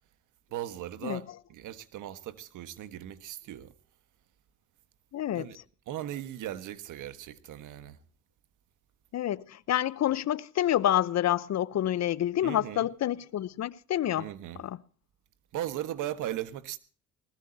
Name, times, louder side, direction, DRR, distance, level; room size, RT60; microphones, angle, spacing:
voice 1, 0.5-1.2 1.5-3.7 5.3-5.6 5.9-8.0 12.4-12.9 14.2-14.6 15.5-16.8, right 12 dB, 85° right, 1.4 m, -38 dB
voice 2, 5.1-5.5 9.1-14.3 14.6-14.8, left 12 dB, 60° left, 0.8 m, -28 dB
20.0 x 19.5 x 2.8 m
cardioid pair, 90°, 30 cm